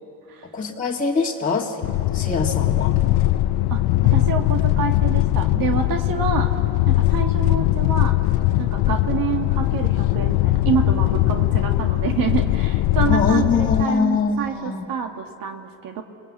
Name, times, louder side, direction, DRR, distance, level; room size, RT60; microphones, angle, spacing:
voice 1, 0.5-1.8 2.1-3.0 13.1-14.8, left 4 dB, 20° left, -3 dB, 1.9 m, -23 dB
sound 1, 1.8-13.8, left 16 dB, 65° left, 0.7 m, -20 dB
voice 2, 4.1-6.5 6.9-8.2 8.6-16.0, right 7 dB, 55° right, 4 dB, 1.9 m, -27 dB
28.0 x 19.5 x 8.6 m, 2.8 s
supercardioid pair, 95°, 40 cm